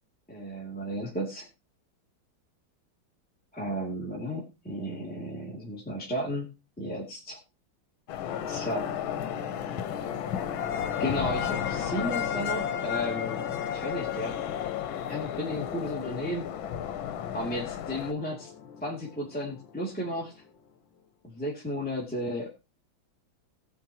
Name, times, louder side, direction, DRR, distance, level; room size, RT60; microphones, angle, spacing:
voice 1, 0.3-1.5 3.5-6.5 6.8-7.4 8.5-8.9 11.0-13.4 13.7-14.5 15.1-16.4 17.3-18.5 18.8-20.3 21.2-22.6, equal, 5° left, -5 dB, 2.5 m, -34 dB
sound 1, 8.1-18.1, left 9 dB, 90° left, 1.6 m, -33 dB
sound 2, 8.2-20.8, left 6 dB, 70° left, 1.6 m, -41 dB
19.5 x 7.5 x 2.9 m, 0.27 s
omnidirectional pair, 2.2 m